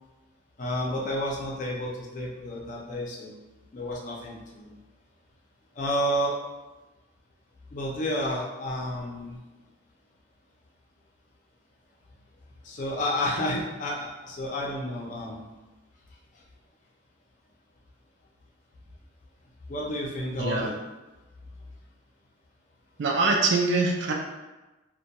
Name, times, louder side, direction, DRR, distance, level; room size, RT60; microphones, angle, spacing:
voice 1, 0.6-3.4 3.7-4.7 5.8-6.4 7.7-9.4 12.6-15.5 19.7-20.7, left 1 dB, 40° left, -2 dB, 0.4 m, -30 dB
voice 2, 20.4-20.7 23.0-24.1, right 3 dB, 60° right, 0 dB, 0.4 m, -24 dB
2.2 x 2.1 x 2.8 m, 1.1 s
head